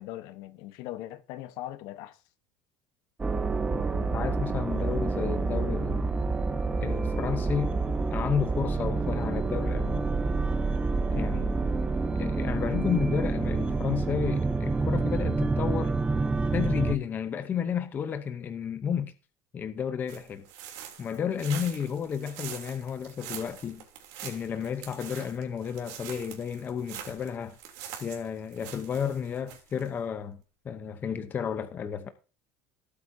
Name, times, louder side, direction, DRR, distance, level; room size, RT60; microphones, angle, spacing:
voice 1, 0.0-2.2 4.7-5.0, left 14 dB, 60° left, 1.1 m, -40 dB
sound 1, 3.2-17.0, right 3 dB, 10° right, 0.7 m, -28 dB
voice 2, 3.7-6.0 6.8-7.8 8.1-10.1 11.1-11.6 12.1-15.9 16.5-19.1 19.5-20.4 21.0-23.8 24.2-27.6 28.0-30.4 30.6-32.1, left 7 dB, 25° left, 0.8 m, -32 dB
sound 2, 20.1-29.9, right 10 dB, 75° right, 3.2 m, -44 dB
17.0 x 8.5 x 2.8 m
cardioid pair, 155°, 8 cm